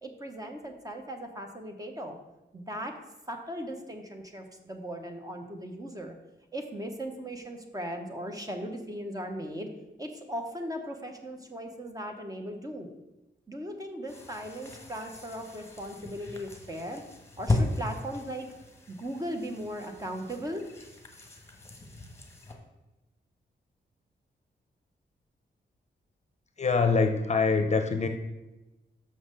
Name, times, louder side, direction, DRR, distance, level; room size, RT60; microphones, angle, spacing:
voice 1, 0.0-2.2 2.5-3.0 3.3-6.2 6.5-9.7 10.0-12.9 13.5-17.0 17.4-18.5 18.9-20.6, equal, 20° right, 4 dB, 0.9 m, -38 dB
sound 1, 14.1-22.5, left 2 dB, 15° left, 1.2 m, -36 dB
voice 2, 26.6-28.1, left 4 dB, 35° left, 6 dB, 0.7 m, -24 dB
6.4 x 5.8 x 6.6 m, 1.0 s
wide cardioid pair, 170°, 19 cm